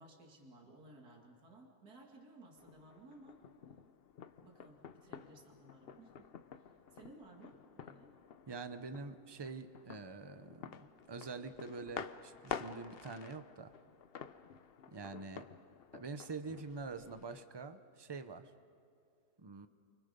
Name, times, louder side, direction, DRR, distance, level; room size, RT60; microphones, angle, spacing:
voice 1, 0.0-3.4 4.4-6.3 6.5-8.1, right 2 dB, 70° right, 0 dB, 2.8 m, -58 dB
sound 1, 2.6-17.5, left 7 dB, 55° left, 0.7 m, -50 dB
voice 2, 8.5-13.7 14.9-15.4 15.9-18.5 19.4-19.7, right 4 dB, 25° right, 10 dB, 0.6 m, -46 dB
29.5 x 25.0 x 5.3 m, 2.4 s
omnidirectional pair, 1.7 m